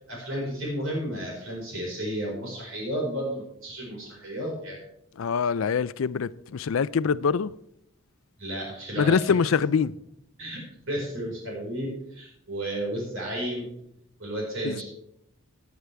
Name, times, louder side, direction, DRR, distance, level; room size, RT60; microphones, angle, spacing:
voice 1, 0.1-4.8 8.4-9.3 10.4-10.6 10.9-13.7 14.2-14.8, right 1 dB, 65° right, 4.8 m, -32 dB
voice 2, 5.2-7.5 9.0-9.9 14.6-14.8, left 6 dB, 65° left, 0.4 m, -24 dB
18.0 x 9.4 x 3.4 m
head